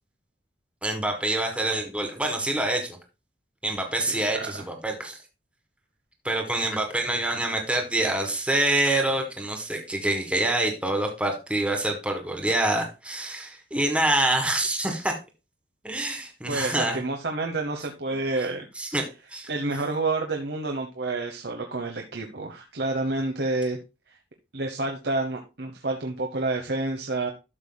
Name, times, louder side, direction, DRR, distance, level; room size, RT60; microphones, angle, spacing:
voice 1, 0.8-3.0 3.6-5.2 6.2-15.1 15.8-17.0 18.7-19.0 19.3-19.5, right 1 dB, 5° right, 3 dB, 1.6 m, -26 dB
voice 2, 4.1-4.4 16.5-18.7 19.5-23.8 24.5-27.3, right 2 dB, 70° right, 2 dB, 1.0 m, -29 dB
12.0 x 6.9 x 2.2 m, 0.27 s
head